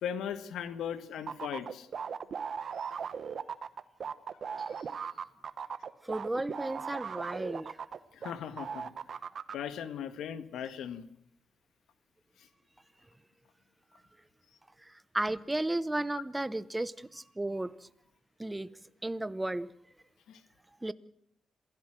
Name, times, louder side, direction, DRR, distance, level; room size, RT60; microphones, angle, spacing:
voice 1, 0.0-1.9 8.1-8.9 9.5-11.0 20.3-20.4, left 8 dB, 85° left, 11 dB, 1.7 m, -38 dB
sound 1, 1.3-8.3 8.6-9.5, right 6 dB, 50° right, 1.1 m, -38 dB
voice 2, 6.0-7.8 14.8-17.9 18.4-18.7 19.0-19.7 20.8-20.9, right 1 dB, 10° right, 16 dB, 0.8 m, -34 dB
27.5 x 16.0 x 6.4 m, 0.72 s
cardioid pair, 120°, 0 cm